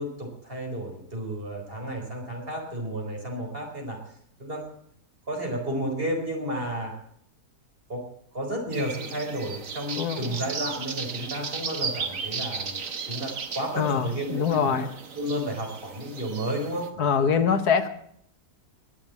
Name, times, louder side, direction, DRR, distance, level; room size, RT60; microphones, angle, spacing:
voice 1, 0.0-4.0 4.4-4.7 5.3-6.9 7.9-8.0 8.3-12.8 13.1-14.8 15.1-17.5, right 1 dB, 35° right, 1 dB, 4.8 m, -32 dB
sound 1, 8.7-16.9, right 5 dB, 55° right, 1.8 m, -35 dB
voice 2, 10.0-10.3 13.8-14.9 17.0-17.9, left 6 dB, 75° left, 10 dB, 1.7 m, -24 dB
22.0 x 7.3 x 8.2 m, 0.66 s
omnidirectional pair, 1.7 m